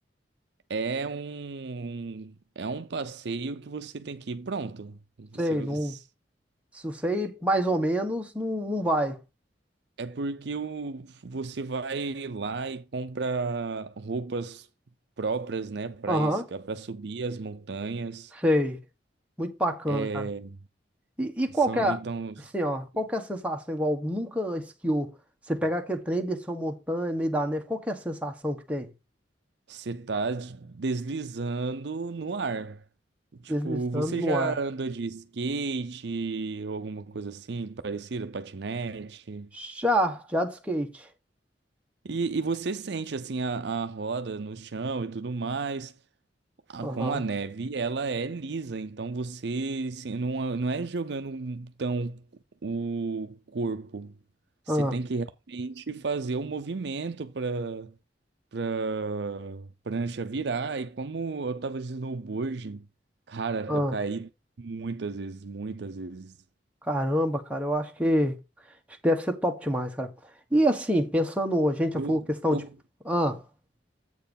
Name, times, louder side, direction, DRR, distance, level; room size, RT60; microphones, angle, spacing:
voice 1, 0.7-6.0 10.0-14.7 15.2-18.3 19.9-20.6 21.7-22.3 29.7-32.8 33.4-39.5 42.0-45.9 46.7-52.2 52.6-54.1 54.7-57.9 58.5-62.9 63.3-64.3 64.6-66.4 71.9-72.2 72.5-72.7, right 4 dB, 65° right, 0.6 m, -32 dB
voice 2, 5.4-6.0 6.8-9.2 16.1-16.4 18.4-18.8 19.4-20.3 21.2-22.0 22.5-25.1 25.5-28.9 33.5-34.6 39.5-41.1 46.8-47.2 54.7-55.0 63.7-63.9 66.9-68.3 69.0-70.1 70.5-72.6 73.1-73.4, equal, 5° right, 1.2 m, -27 dB
8.2 x 4.5 x 5.2 m
head